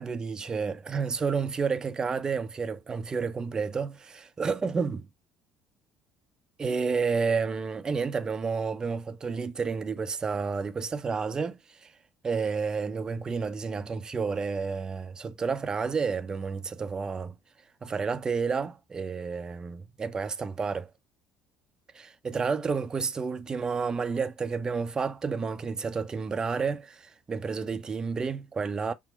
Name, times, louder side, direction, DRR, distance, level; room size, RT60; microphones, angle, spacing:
voice 1, 0.0-5.1 6.6-11.9 12.2-17.4 17.8-20.9 21.9-28.9, right 5 dB, 25° right, 0.6 m, -30 dB
6.0 x 2.0 x 3.9 m
figure-of-eight pair, 55°, 3 cm